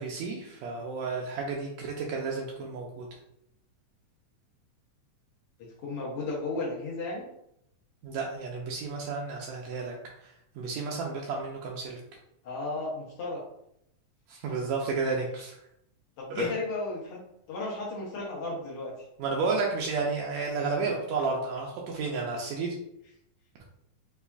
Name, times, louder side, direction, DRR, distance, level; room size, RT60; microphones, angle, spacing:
voice 1, 0.0-3.1 8.0-12.0 14.3-15.6 16.3-16.5 19.2-22.8, right 4 dB, 90° right, -2 dB, 1.5 m, -32 dB
voice 2, 5.8-7.3 12.4-13.4 16.2-17.2 17.5-19.0, left 2 dB, 90° left, -6 dB, 1.3 m, -34 dB
5.4 x 2.3 x 2.3 m, 0.77 s
omnidirectional pair, 3.7 m